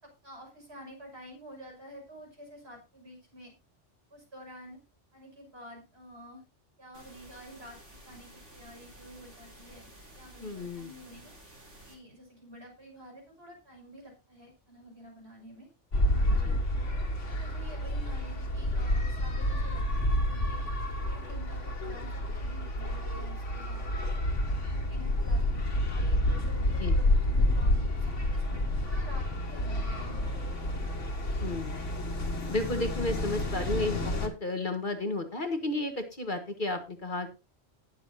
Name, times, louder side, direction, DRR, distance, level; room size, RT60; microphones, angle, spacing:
voice 1, 0.0-3.5 4.1-4.8 5.1-6.4 6.8-7.8 8.0-11.3 11.9-15.7 16.1-16.6 17.3-20.6 20.9-23.9 24.7-30.6, equal, 60° right, 0 dB, 6.5 m, -50 dB
sound 1, 6.9-11.9, right 1 dB, 80° right, 4.6 m, -52 dB
voice 2, 10.4-10.9 16.3-16.6 26.8-27.0 31.4-31.8 32.5-37.3, left 2 dB, 45° left, 5 dB, 1.6 m, -33 dB
sound 2, 15.9-34.3, left 1 dB, 85° left, 2.5 m, -29 dB
19.0 x 7.4 x 2.8 m, 0.29 s
omnidirectional pair, 1.2 m